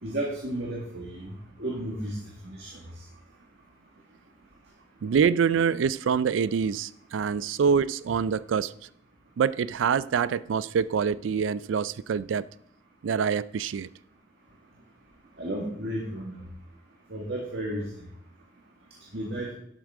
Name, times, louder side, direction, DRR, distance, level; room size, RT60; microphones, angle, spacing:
voice 1, 0.0-1.3 1.6-2.2 2.4-2.8 15.4-16.4 17.1-17.9 19.1-19.5, right 1 dB, 60° right, 1.9 m, -33 dB
voice 2, 5.0-8.7 9.4-12.5 13.0-13.9, right 6 dB, 90° right, 0.4 m, -25 dB
11.5 x 8.0 x 3.7 m
head